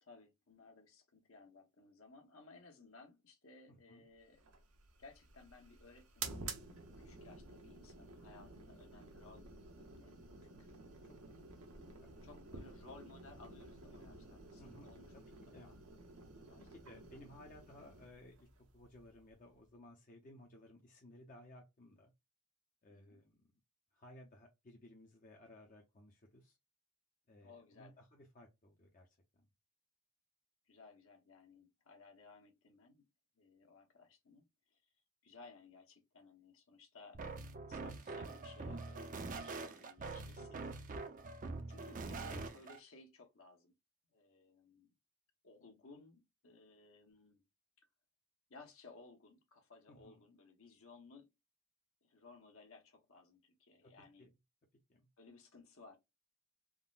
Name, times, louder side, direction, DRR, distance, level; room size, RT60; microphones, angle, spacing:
voice 1, 0.0-4.4 5.0-6.4 7.0-9.5 9.7-10.8 12.2-15.4 15.6-15.7 16.5-17.4 22.9-23.2 27.4-27.9 30.7-33.0 33.4-34.8 35.2-37.2 37.6-40.7 41.7-43.7 44.1-44.9 45.4-47.4 48.5-51.3 52.0-54.3 55.2-56.0, left 3 dB, 65° left, 0.9 m, -60 dB
voice 2, 3.7-4.0 12.0-12.1 12.4-12.5 14.6-14.9 15.4-15.7 16.5-18.5 18.7-22.1 22.8-23.5 23.9-26.6 27.3-29.5 40.4-40.6 49.9-50.2 53.8-53.9 54.2-54.3 54.9-55.1, left 1 dB, 35° left, 0.6 m, -59 dB
sound 1, 4.4-19.7, right 4 dB, 75° right, 0.8 m, -52 dB
sound 2, 37.1-42.8, right 3 dB, 35° right, 0.5 m, -44 dB
3.6 x 2.0 x 2.3 m
head